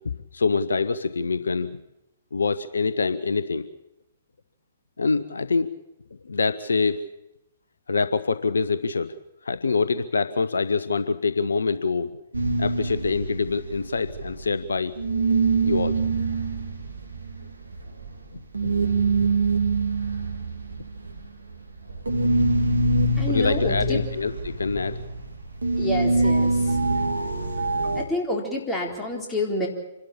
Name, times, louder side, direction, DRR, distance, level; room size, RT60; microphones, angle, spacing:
voice 1, 0.0-1.8 2.3-3.7 5.0-5.7 6.2-7.0 7.9-9.1 9.4-12.1 12.6-15.0 15.6-16.0 18.6-18.7 23.3-25.0, left 4 dB, 75° left, 13 dB, 0.8 m, -25 dB
sound 1, 12.3-14.7 15.0-28.0, right 3 dB, 80° right, 2.3 m, -25 dB
voice 2, 23.2-24.0 25.8-26.8 28.0-29.7, left 1 dB, 10° left, -1 dB, 4.0 m, -28 dB
26.5 x 12.5 x 8.8 m, 0.92 s
figure-of-eight pair, 120°, 0 cm